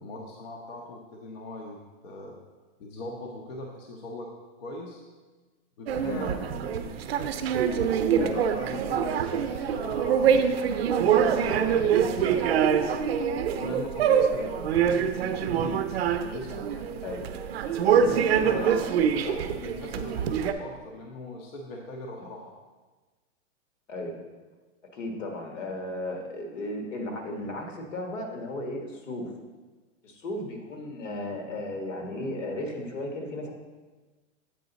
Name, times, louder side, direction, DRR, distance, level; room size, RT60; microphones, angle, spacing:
voice 1, 0.0-1.8 2.0-2.4 2.8-4.3 4.6-5.0 5.8-7.0 7.8-10.6 10.9-12.7 13.5-15.8 16.2-16.9 17.9-22.5, left 2 dB, 50° left, 0 dB, 0.8 m, -39 dB
sound 1, 5.9-20.5, right 8 dB, 55° right, 0.5 m, -25 dB
voice 2, 17.8-18.9 22.2-22.3 23.9-24.2 24.9-29.3 30.0-33.5, left 1 dB, 80° left, 3 dB, 1.5 m, -35 dB
7.6 x 5.0 x 3.9 m, 1.3 s
supercardioid pair, 175°, 37 cm